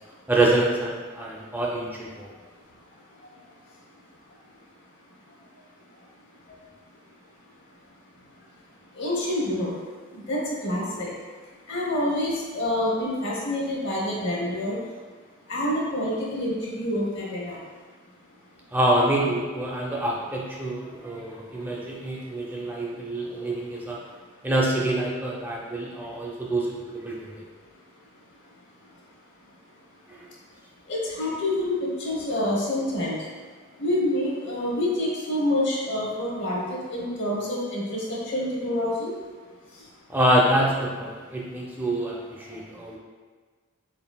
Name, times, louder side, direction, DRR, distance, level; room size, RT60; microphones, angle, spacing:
voice 1, 0.3-2.3 18.7-24.0 24.4-27.3 30.1-30.3 40.1-43.0, right 1 dB, 10° right, -4 dB, 0.4 m, -26 dB
voice 2, 9.0-9.8 10.1-11.1 11.7-14.8 15.5-17.6 30.9-33.2 33.8-39.1, left 1 dB, 55° left, -4 dB, 1.0 m, -27 dB
3.9 x 3.9 x 2.3 m, 1.5 s
head